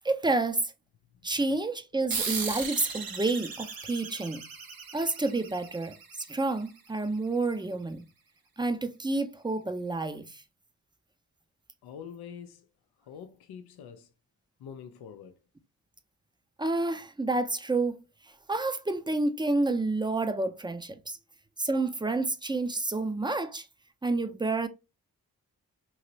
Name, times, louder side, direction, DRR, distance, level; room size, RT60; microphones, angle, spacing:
voice 1, 0.0-0.7 1.2-4.5 4.9-8.0 8.6-10.4 16.6-18.0 18.5-21.2 21.6-23.7 24.0-24.7, right 2 dB, 10° right, 0.5 m, -29 dB
sound 1, 2.1-7.1, right 5 dB, 65° right, 1.0 m, -37 dB
voice 2, 11.8-12.7 13.0-14.1 14.6-15.4, left 7 dB, 80° left, 0.5 m, -45 dB
3.1 x 2.8 x 2.7 m
supercardioid pair, 40°, 38 cm